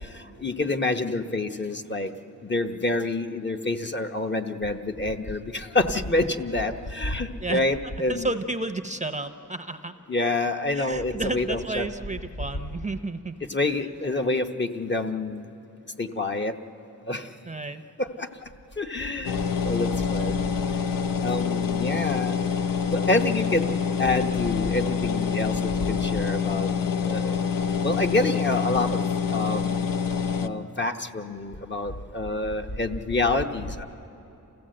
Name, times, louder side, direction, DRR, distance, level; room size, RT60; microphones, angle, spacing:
voice 1, 0.4-2.1 2.5-8.3 10.1-11.9 13.5-15.5 16.0-16.5 17.1-17.2 18.2-18.3 18.8-19.4 19.6-20.5 21.2-22.3 22.9-23.7 24.0-25.5 25.9-26.7 27.0-27.3 27.8-28.9 29.3-29.9 30.4-33.8, left 2 dB, 30° left, 4 dB, 1.0 m, -27 dB
voice 2, 7.4-9.9 10.7-13.4 14.0-14.4 17.5-17.8, right 2 dB, 20° right, 8 dB, 0.7 m, -32 dB
sound 1, 19.2-30.5, left 6 dB, 70° left, 0.8 m, -26 dB
27.5 x 15.5 x 7.7 m, 3.0 s
cardioid pair, 80°, 35 cm